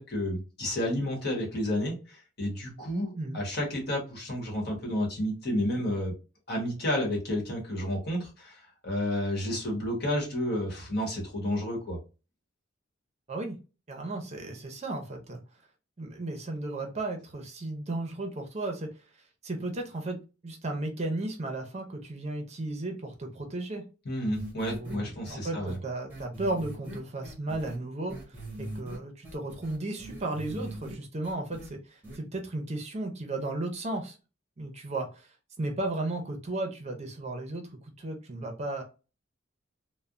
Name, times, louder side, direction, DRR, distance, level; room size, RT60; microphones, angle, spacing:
voice 1, 0.0-6.1 6.5-12.0 24.0-25.8, left 1 dB, 55° left, -1 dB, 1.3 m, -31 dB
voice 2, 13.9-15.4 16.0-18.9 19.4-23.9 24.7-34.2 34.6-35.3 35.6-38.8, right 2 dB, 35° right, 3 dB, 0.6 m, -35 dB
sound 1, 24.3-24.9 25.3-25.4 25.7-25.8 26.1-27.8 28.1-29.0 29.2-30.9 31.2-31.7 32.0-32.2, right 1 dB, 10° right, 0.9 m, -40 dB
3.3 x 2.1 x 2.5 m, 0.31 s
head